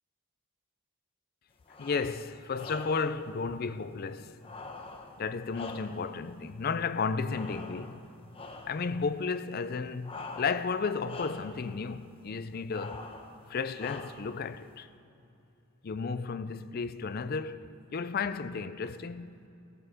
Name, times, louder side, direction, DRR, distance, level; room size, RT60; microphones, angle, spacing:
sound 1, 1.7-2.2 2.5-3.2 4.4-6.2 7.3-8.0 8.3-8.9 10.0-10.8 11.0-11.6 12.7-13.3 13.8-14.4, left 3 dB, 25° left, 0.9 m, -44 dB
voice 1, 1.8-4.4 5.2-8.1 8.7-13.1 13.5-14.9 15.8-19.4, left 5 dB, 40° left, 0.4 m, -33 dB
14.5 x 13.5 x 5.0 m
head